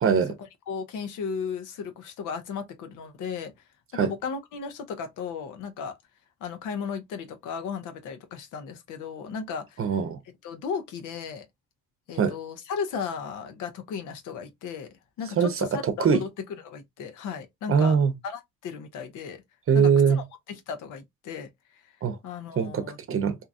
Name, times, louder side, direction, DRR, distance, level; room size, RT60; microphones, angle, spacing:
voice 1, 0.0-0.3 3.9-4.1 9.8-10.2 12.2-12.3 15.4-16.2 17.7-18.1 19.7-20.2 22.0-22.2 22.6-23.3, right 6 dB, 45° right, 0.7 m, -22 dB
voice 2, 0.7-3.5 4.0-5.9 6.4-9.9 10.4-11.5 12.1-14.9 15.2-16.3 16.6-18.0 18.2-19.4 19.7-21.5 22.2-23.0, left 6 dB, 85° left, 0.8 m, -35 dB
2.7 x 2.4 x 2.6 m
cardioid pair, 90°, 30 cm